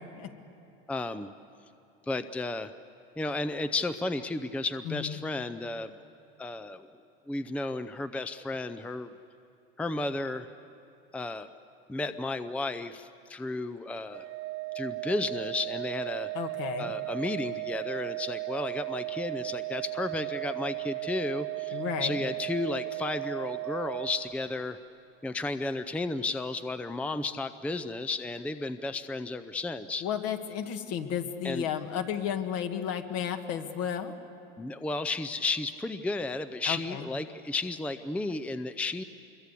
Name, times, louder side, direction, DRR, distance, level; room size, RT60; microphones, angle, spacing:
voice 1, 0.9-1.3 2.1-2.7 3.2-6.0 6.4-6.9 7.3-9.1 9.8-10.5 11.1-11.5 11.9-14.3 14.7-16.3 16.8-24.8 25.2-30.1 31.4-31.7 34.6-39.0, left 2 dB, 5° left, 11 dB, 0.5 m, -33 dB
Organ, 14.1-24.8, right 26 dB, 55° right, 0.7 m, -36 dB
voice 2, 16.3-16.9 21.7-22.2 30.0-34.1 36.7-37.1, left 8 dB, 60° left, 7 dB, 1.9 m, -33 dB
25.5 x 23.0 x 8.4 m, 2.8 s
supercardioid pair, 115°, 29 cm